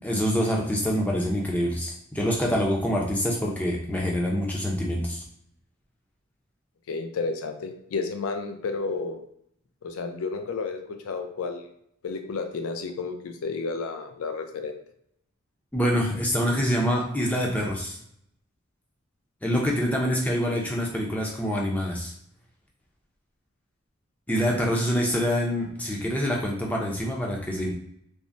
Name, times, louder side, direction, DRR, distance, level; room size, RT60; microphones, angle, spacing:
voice 1, 0.0-5.2 15.7-18.0 19.4-22.1 24.3-27.7, equal, 5° left, -2 dB, 0.4 m, -26 dB
voice 2, 6.9-9.2 9.8-11.6 12.0-14.8, left 4 dB, 85° left, 6 dB, 0.4 m, -31 dB
3.3 x 2.0 x 2.5 m, 0.70 s
head